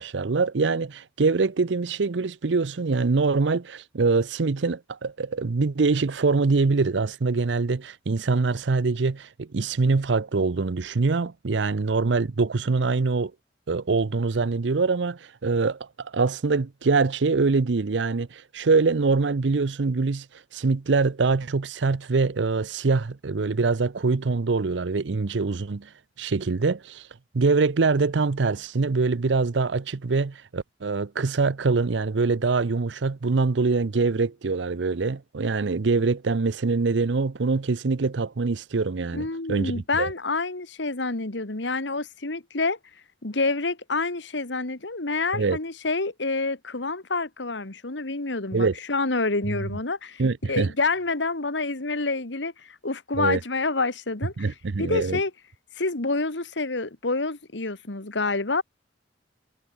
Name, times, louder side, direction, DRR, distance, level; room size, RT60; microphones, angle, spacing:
voice 1, 0.0-13.3 13.7-20.3 20.5-25.9 26.2-27.0 27.3-40.1 45.3-45.6 48.5-48.8 50.2-50.7 53.1-53.4 54.4-55.2, right 4 dB, 75° right, 0.6 m, -24 dB
voice 2, 39.1-42.8 43.2-50.2 50.5-55.3 55.8-58.6, left 3 dB, 75° left, 1.9 m, -28 dB
head